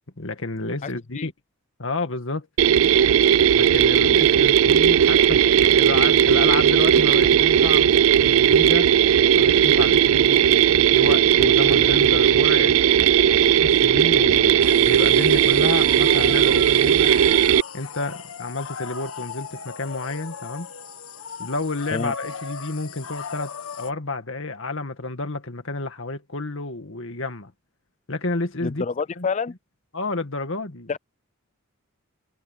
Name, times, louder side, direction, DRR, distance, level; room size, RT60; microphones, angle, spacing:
voice 1, 0.2-1.3 1.8-2.5 3.5-8.9 9.3-12.8 13.4-17.2 17.7-20.7 21.4-27.5 28.1-28.8 29.2-29.3 29.9-30.9, left 3 dB, 65° left, 2.0 m, -30 dB
voice 2, 0.8-1.3 21.9-22.1 28.6-29.5 30.9-31.0, left 5 dB, 35° left, 0.4 m, -28 dB
Mechanisms, 2.6-17.6, right 9 dB, 70° right, 0.4 m, -17 dB
sound 1, 14.6-23.9, left 6 dB, 90° left, 1.6 m, -37 dB
head